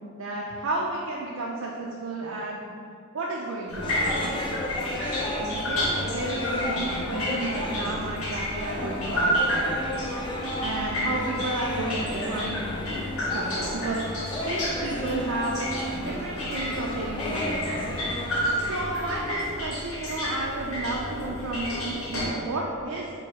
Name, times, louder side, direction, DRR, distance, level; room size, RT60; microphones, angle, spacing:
voice 1, 0.1-2.6 3.1-4.4 4.9-9.8 10.6-12.6 13.3-14.0 14.4-15.6 16.0-18.0 18.7-23.1, right 2 dB, 75° right, -3 dB, 0.5 m, -32 dB
sound 1, 3.7-22.3, equal, 80° left, 1.3 m, -31 dB
sound 2, 3.8-19.1, left 1 dB, 20° left, 0.5 m, -34 dB
3.9 x 3.0 x 4.5 m, 2.3 s
head